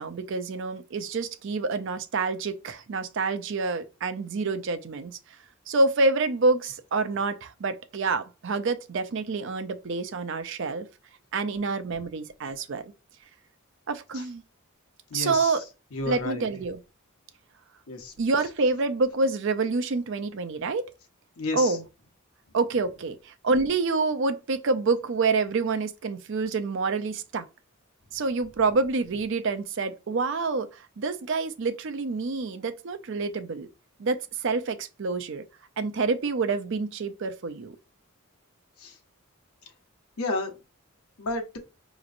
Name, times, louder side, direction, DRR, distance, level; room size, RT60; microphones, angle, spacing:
voice 1, 0.0-5.1 5.7-10.9 11.3-12.9 13.9-14.4 15.1-15.6 16.0-16.8 18.2-20.9 21.5-21.8 22.5-27.4 28.1-30.7 31.0-33.7 34.0-35.4 35.8-37.8, right 3 dB, 60° right, 0.5 m, -27 dB
voice 2, 15.1-15.6 15.9-16.4 17.9-18.1 21.4-21.8 38.8-38.9 40.2-40.5 41.2-41.6, left 2 dB, 90° left, 1.0 m, -31 dB
5.0 x 3.0 x 2.5 m
head